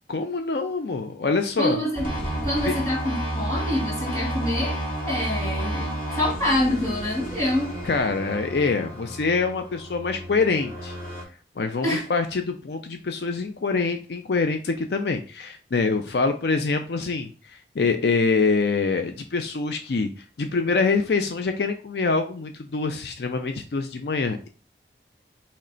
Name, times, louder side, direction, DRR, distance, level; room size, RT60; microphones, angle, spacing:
voice 1, 0.1-1.8 2.7-2.8 7.8-11.0 11.6-20.1 20.4-24.5, left 4 dB, 70° left, 6 dB, 0.5 m, -25 dB
voice 2, 1.6-2.1 2.4-4.8 5.0-7.7 11.8-12.1, left 1 dB, 15° left, -4 dB, 1.7 m, -26 dB
sound 1, 1.9-11.2, right 1 dB, 50° left, 2.0 m, -31 dB
4.3 x 3.2 x 3.8 m, 0.36 s
head